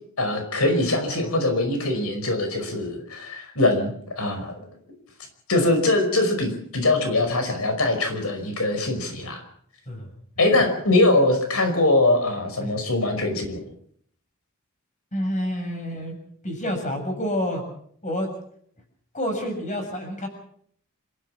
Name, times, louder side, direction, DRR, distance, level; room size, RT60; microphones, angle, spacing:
voice 1, 0.2-4.7 5.5-9.4 10.4-13.6, left 2 dB, 90° left, 6 dB, 5.4 m, -22 dB
voice 2, 15.1-16.2 16.4-17.6 18.0-18.3 19.1-20.3, equal, 35° left, 5 dB, 7.0 m, -28 dB
27.5 x 15.0 x 7.4 m, 0.64 s
head